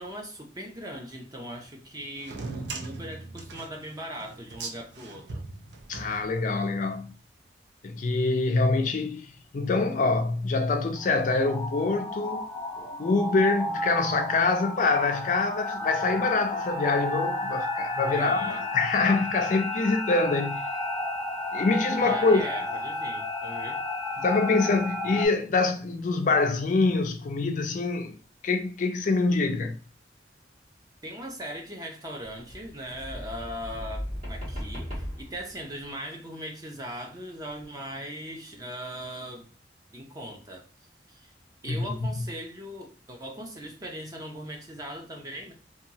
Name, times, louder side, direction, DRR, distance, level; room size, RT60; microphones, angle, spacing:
voice 1, 0.0-5.5 18.1-18.6 22.0-23.8 31.0-39.5 39.9-40.7 41.1-41.3 41.6-45.5, equal, 20° right, 0.5 m, -39 dB
sound 1, 2.2-6.8, right 3 dB, 80° right, 0.6 m, -39 dB
voice 2, 5.9-7.1 7.8-12.4 12.8-20.6 21.5-22.4 24.2-28.2 28.4-29.8 41.7-42.0, left 3 dB, 45° left, 0.3 m, -25 dB
sound 2, 11.0-25.3, left 1 dB, ahead, 1.1 m, -32 dB
sound 3, 32.2-35.8 37.6-37.7, equal, 40° right, 1.4 m, -37 dB
2.9 x 2.3 x 2.6 m
head